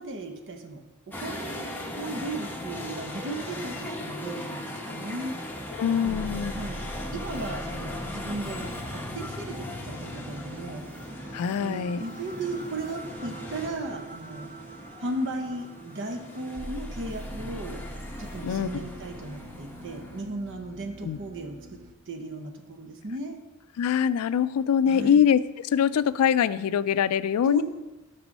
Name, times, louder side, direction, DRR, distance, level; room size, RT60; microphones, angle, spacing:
voice 1, 0.0-1.7 2.0-5.3 6.0-6.9 7.1-10.8 11.6-14.5 15.0-17.8 18.2-21.8 22.1-23.4 24.9-25.3 27.4-27.6, right 2 dB, 60° right, 6 dB, 0.9 m, -36 dB
sound 1, 1.1-20.2, left 1 dB, 10° left, 0.9 m, -39 dB
voice 2, 5.8-6.5 11.3-12.0 18.4-18.7 21.0-21.2 23.8-25.4 25.7-27.6, left 8 dB, 85° left, 16 dB, 0.3 m, -23 dB
sound 2, 6.0-21.9, right 1 dB, 40° right, 0.5 m, -43 dB
6.2 x 6.1 x 5.2 m, 1.1 s
head